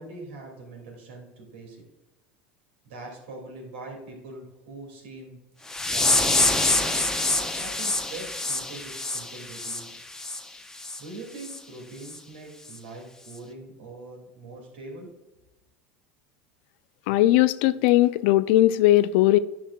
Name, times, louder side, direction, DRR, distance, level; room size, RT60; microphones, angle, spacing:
voice 1, 0.0-1.8 2.9-10.0 11.0-15.1, right 2 dB, 85° right, 2.4 m, -42 dB
sound 1, 5.7-10.4 10.8-11.0 11.4-11.6 12.1-12.2 12.7-12.8, left 2 dB, 10° left, 0.6 m, -26 dB
voice 2, 17.1-19.4, left 15 dB, 70° left, 0.4 m, -19 dB
10.0 x 5.9 x 2.4 m
supercardioid pair, 110°, 6 cm